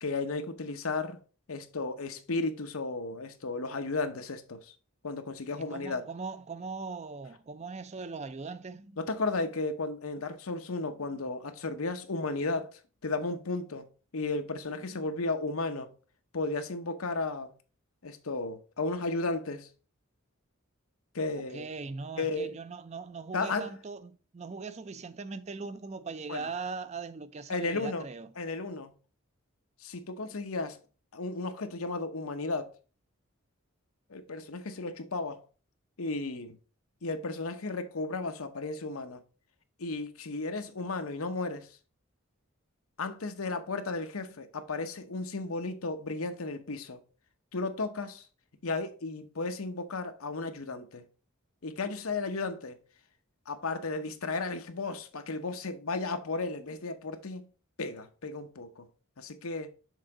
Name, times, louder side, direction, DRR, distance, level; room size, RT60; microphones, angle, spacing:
voice 1, 0.0-1.2 1.5-4.7 5.0-6.0 9.0-13.9 14.1-15.9 16.3-17.5 18.0-19.7 21.1-21.7 22.2-22.5 23.3-23.7 26.3-26.5 27.5-28.1 28.4-28.9 29.8-30.8 31.1-32.7 34.1-35.4 36.0-36.6 37.0-39.2 39.8-41.7 43.0-47.0 47.5-48.3 48.6-51.1 51.6-52.8 53.5-57.5 57.8-58.9 59.2-59.7, left 3 dB, 85° left, 0.9 m, -34 dB
voice 2, 5.6-9.0 21.3-28.3, right 4 dB, 30° right, 0.4 m, -40 dB
6.5 x 3.8 x 4.9 m
head